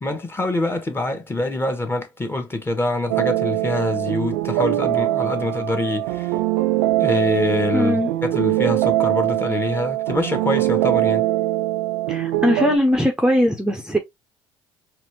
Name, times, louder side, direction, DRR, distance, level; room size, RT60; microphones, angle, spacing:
voice 1, 0.0-6.4 7.0-11.3, left 2 dB, 20° left, 1.3 m, -25 dB
sound 1, 3.1-12.8, right 16 dB, 80° right, 0.4 m, -22 dB
voice 2, 7.7-8.1 12.1-14.0, equal, 5° right, 0.8 m, -20 dB
4.2 x 2.6 x 3.0 m
hypercardioid pair, 65°, 12 cm